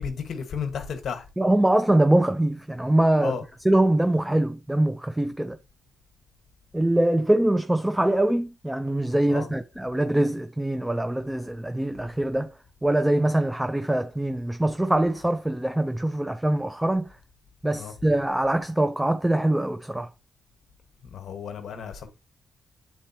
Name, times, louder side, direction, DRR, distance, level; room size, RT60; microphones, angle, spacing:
voice 1, 0.0-1.3 3.2-3.4 9.3-9.5 17.7-17.9 21.0-22.1, left 6 dB, 70° left, 1.3 m, -33 dB
voice 2, 1.4-3.4 3.6-5.6 6.7-12.5 12.8-17.1 17.6-20.1, right 1 dB, 10° right, 0.5 m, -23 dB
8.9 x 4.1 x 2.8 m
cardioid pair, 70°, 0 cm